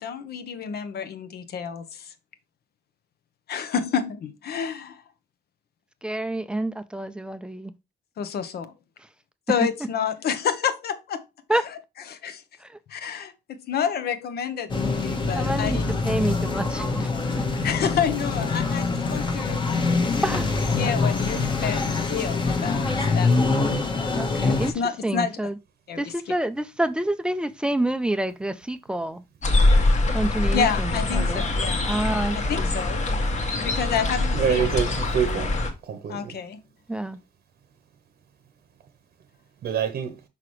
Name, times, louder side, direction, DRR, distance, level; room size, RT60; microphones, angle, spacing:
voice 1, 0.0-2.1 3.5-5.0 8.2-8.7 9.5-11.2 12.1-12.4 12.9-15.8 17.6-20.0 20.8-23.8 24.4-25.4 25.9-26.1 30.5-31.9 32.5-33.0 33.5-34.7 36.1-36.6, left 7 dB, 65° left, 0.9 m, -29 dB
voice 2, 6.0-7.7 9.6-9.7 11.5-11.6 12.6-12.8 13.7-13.8 15.3-15.8 16.0-17.1 20.2-20.5 24.2-24.7 25.0-25.6 26.0-29.2 30.1-31.4 31.8-32.7 36.9-37.2, right 1 dB, 5° right, 0.4 m, -28 dB
sound 1, 14.7-24.7, left 3 dB, 25° left, 1.1 m, -24 dB
sound 2, 29.4-35.7, left 2 dB, 40° left, 1.4 m, -23 dB
voice 3, 34.3-35.6 35.8-36.4 39.6-40.1, right 8 dB, 60° right, 0.9 m, -26 dB
5.8 x 5.7 x 3.1 m
wide cardioid pair, 180°, 18 cm